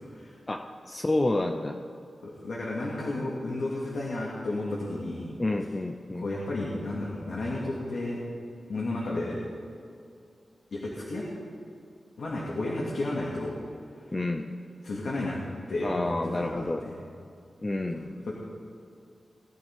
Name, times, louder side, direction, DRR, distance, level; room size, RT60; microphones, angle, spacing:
voice 1, 0.5-1.8 5.4-6.3 14.1-14.5 15.8-16.8 17.6-18.0, left 2 dB, 20° left, 5 dB, 0.5 m, -29 dB
voice 2, 2.2-5.3 6.1-8.2 8.7-9.4 10.7-11.2 12.2-13.6 14.8-15.4 15.7-16.9 17.9-18.3, left 2 dB, 70° left, -5 dB, 2.2 m, -32 dB
19.5 x 12.0 x 3.6 m, 2.5 s
wide cardioid pair, 155°, 0 cm